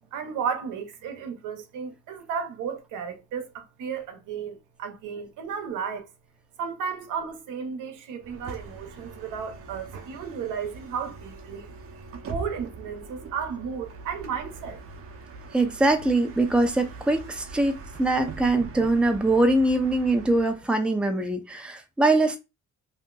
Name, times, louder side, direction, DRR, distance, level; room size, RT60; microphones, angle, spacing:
voice 1, 0.1-6.1 6.6-11.7 12.3-14.8, right 6 dB, 85° right, 0.8 m, -34 dB
Bus, 8.2-20.6, right 3 dB, 50° right, 0.7 m, -42 dB
voice 2, 15.5-22.4, right 2 dB, 5° right, 0.5 m, -23 dB
2.7 x 2.1 x 3.7 m
cardioid pair, 90°, 30 cm